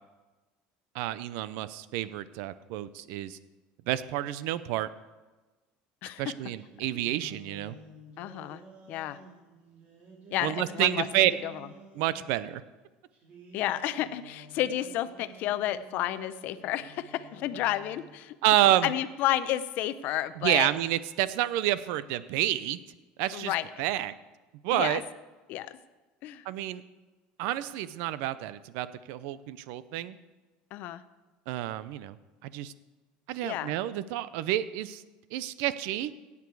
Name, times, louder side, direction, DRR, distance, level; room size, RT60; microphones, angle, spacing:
voice 1, 0.9-3.4 3.9-4.9 6.2-7.8 10.4-11.3 12.0-12.6 18.4-18.9 20.4-22.8 23.2-24.1 24.6-25.0 26.4-26.8 27.4-30.2 31.5-32.2 32.4-32.7 33.3-35.0 35.3-36.1, right 14 dB, 70° right, 15 dB, 0.6 m, -29 dB
voice 2, 6.0-6.3 8.2-8.6 8.9-9.2 10.3-11.5 13.5-18.4 18.8-20.7 23.3-23.7 24.7-25.0 25.5-25.8 26.2-26.4 30.7-31.0 33.4-33.7, left 13 dB, 55° left, 14 dB, 0.6 m, -31 dB
sound 1, 6.5-12.3 13.1-18.2, right 2 dB, 40° right, 3.1 m, -51 dB
16.5 x 8.4 x 4.8 m, 1.2 s
cardioid pair, 145°, 4 cm